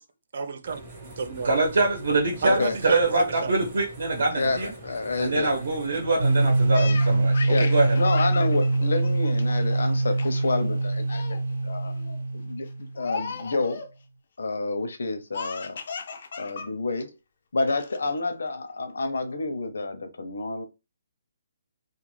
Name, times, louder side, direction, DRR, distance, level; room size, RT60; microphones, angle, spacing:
voice 1, 0.3-1.5 2.4-3.5, right 5 dB, 40° right, 0.3 m, -31 dB
sound 1, 0.6-6.7, right 2 dB, 20° right, 0.8 m, -44 dB
voice 2, 1.4-4.7 5.1-8.0, right 2 dB, 55° right, 0.8 m, -24 dB
voice 3, 4.3-5.5 7.5-11.4 11.6-11.9 12.3-13.8 14.4-15.8 16.4-17.2 17.5-20.6, left 3 dB, 85° left, 0.6 m, -29 dB
sound 2, 6.2-13.0, right 2 dB, 85° right, 0.9 m, -24 dB
Laughter, 6.7-9.8 10.2-10.5 10.8-11.4 11.9-12.2 13.0-13.9 15.3-16.7 17.0-17.1 17.7-18.2, left 5 dB, 45° left, 0.3 m, -37 dB
2.3 x 2.3 x 3.1 m
hypercardioid pair, 180°, 0 cm